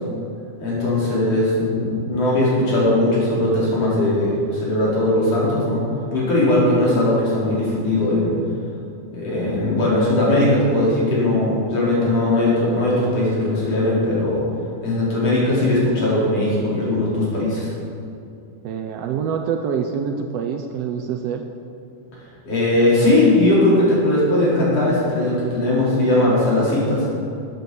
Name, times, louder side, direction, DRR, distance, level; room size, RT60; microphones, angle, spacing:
voice 1, 0.6-5.8 6.1-8.3 9.1-14.4 14.8-17.7 22.5-27.1, left 1 dB, 50° left, -7 dB, 5.1 m, -19 dB
voice 2, 18.6-21.4, right 7 dB, 80° right, 4 dB, 1.4 m, -25 dB
12.0 x 10.0 x 6.9 m, 2.6 s
omnidirectional pair, 3.7 m